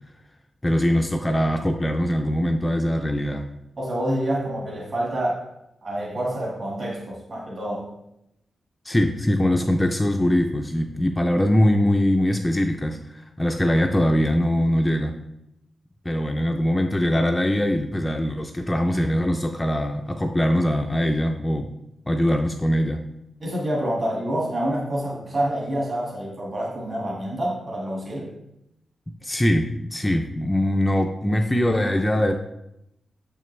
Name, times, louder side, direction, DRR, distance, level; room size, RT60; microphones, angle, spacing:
voice 1, 0.6-3.5 8.8-15.2 16.1-21.7 22.1-23.0 29.1-32.3, equal, 15° left, 3 dB, 0.4 m, -22 dB
voice 2, 3.8-5.4 5.8-7.9 23.4-28.4, right 1 dB, 40° right, -3 dB, 1.4 m, -27 dB
6.7 x 5.7 x 3.1 m, 0.85 s
wide cardioid pair, 135°, 0 cm